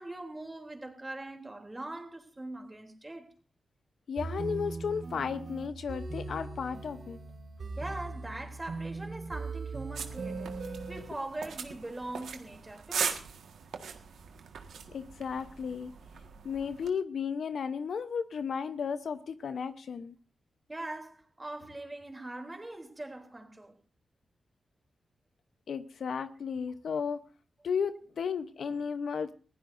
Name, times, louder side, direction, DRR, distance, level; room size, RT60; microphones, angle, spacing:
voice 1, 0.0-3.3 7.8-13.3 20.7-23.8, right 2 dB, 25° right, 3.2 m, -42 dB
voice 2, 4.1-7.2 14.9-15.9 16.4-20.1 25.7-27.2 27.6-29.3, left 6 dB, 75° left, 0.8 m, -34 dB
sound 1, 4.2-11.0, right 3 dB, 65° right, 5.5 m, -39 dB
sound 2, 9.9-16.9, right 6 dB, 85° right, 1.6 m, -40 dB
22.0 x 15.5 x 2.6 m
cardioid pair, 55°, 0 cm